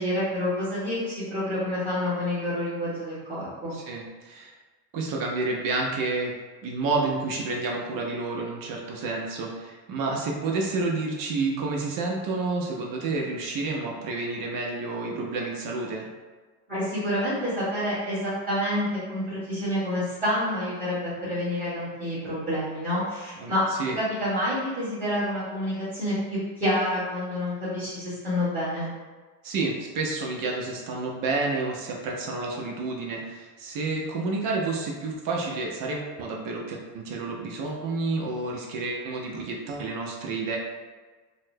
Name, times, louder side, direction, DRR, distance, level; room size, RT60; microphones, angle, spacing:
voice 1, 0.0-3.8 16.7-23.6 24.0-28.9, left 1 dB, 20° right, -13 dB, 1.4 m, -28 dB
voice 2, 3.7-4.5 4.9-6.3 6.6-16.1 23.4-23.5 23.8-24.0 29.4-40.6, right 3 dB, 55° right, -1 dB, 0.6 m, -30 dB
4.0 x 2.1 x 2.6 m, 1.4 s
cardioid pair, 145°, 39 cm